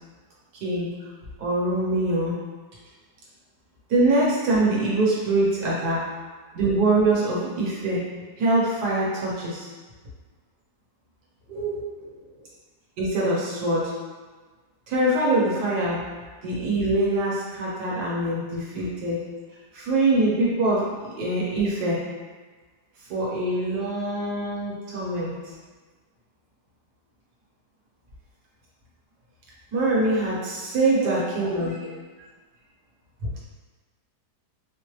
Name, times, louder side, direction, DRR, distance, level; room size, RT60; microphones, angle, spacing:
voice 1, 1.4-2.4 3.9-6.0 6.5-8.0 8.4-9.7 13.0-13.9 14.9-16.1 16.4-19.3 19.7-22.0 23.1-25.3 29.7-31.8, right 2 dB, 65° right, -6 dB, 1.5 m, -24 dB
voice 2, 11.5-12.5 30.9-31.5 33.2-33.4, right 2 dB, 85° right, -8 dB, 1.5 m, -34 dB
4.6 x 2.1 x 3.1 m, 1.4 s
omnidirectional pair, 1.8 m